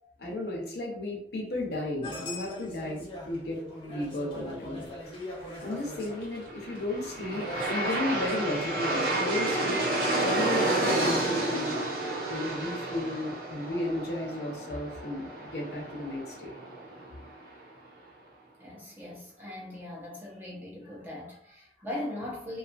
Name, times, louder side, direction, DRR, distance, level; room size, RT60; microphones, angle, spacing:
voice 1, 0.2-4.9 5.6-9.8 10.2-11.8 12.3-16.5, left 1 dB, 65° left, -1 dB, 0.7 m, -34 dB
sound 1, 2.0-8.6, left 1 dB, 30° left, 0.7 m, -41 dB
Aircraft, 6.5-17.5, right 2 dB, 70° right, 0.8 m, -31 dB
voice 2, 18.6-22.6, left 1 dB, 10° right, -5 dB, 0.7 m, -39 dB
2.6 x 2.4 x 2.5 m, 0.70 s
head